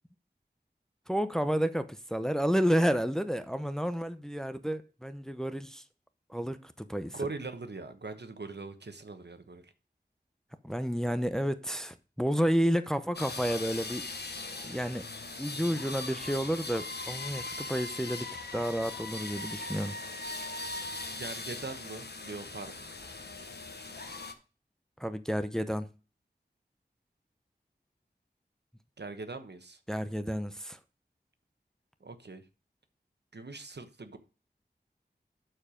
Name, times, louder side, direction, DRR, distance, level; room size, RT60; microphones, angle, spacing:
voice 1, 1.1-5.8 6.3-7.1 10.6-14.0 14.6-15.0 15.4-19.9 25.0-25.9 29.9-30.8, equal, 5° left, 0.7 m, -30 dB
voice 2, 7.1-9.7 21.1-22.9 29.0-29.8 32.0-32.4 33.3-34.2, right 3 dB, 75° right, 1.1 m, -41 dB
sound 1, 13.1-24.3, left 3 dB, 70° left, 1.1 m, -40 dB
12.0 x 4.6 x 5.1 m
wide cardioid pair, 55°, 18 cm